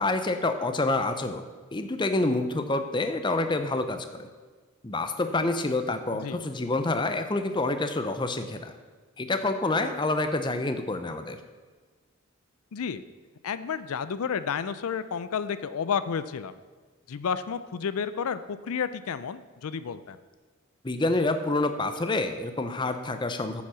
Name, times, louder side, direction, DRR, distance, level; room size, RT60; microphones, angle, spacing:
voice 1, 0.0-1.4 1.7-4.3 4.8-8.7 9.2-11.4 20.8-23.6, left 2 dB, 20° left, 8 dB, 0.6 m, -27 dB
voice 2, 12.7-13.0 13.4-16.5 17.1-20.2, left 6 dB, 80° left, 14 dB, 0.4 m, -31 dB
9.3 x 7.2 x 6.1 m, 1.4 s
head